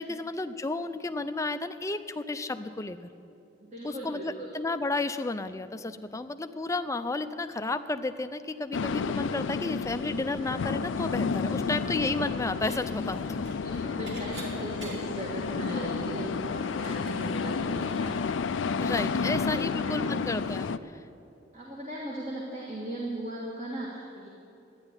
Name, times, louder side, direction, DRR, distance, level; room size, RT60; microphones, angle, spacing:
voice 1, 0.0-3.1 3.8-13.4 18.8-20.8, left 2 dB, 15° left, 10 dB, 0.5 m, -32 dB
voice 2, 3.6-4.5 13.6-18.3 19.0-20.1 21.5-24.3, right 1 dB, 35° right, -3 dB, 1.9 m, -38 dB
sound 1, 8.7-20.8, left 5 dB, 75° left, 0.4 m, -31 dB
Dishes pots and pans / Chink clink, 12.1-12.8 13.1-15.2 15.7-15.8 16.0-19.1, right 2 dB, 70° right, 2.6 m, -49 dB
13.0 x 9.9 x 9.7 m, 2.8 s
head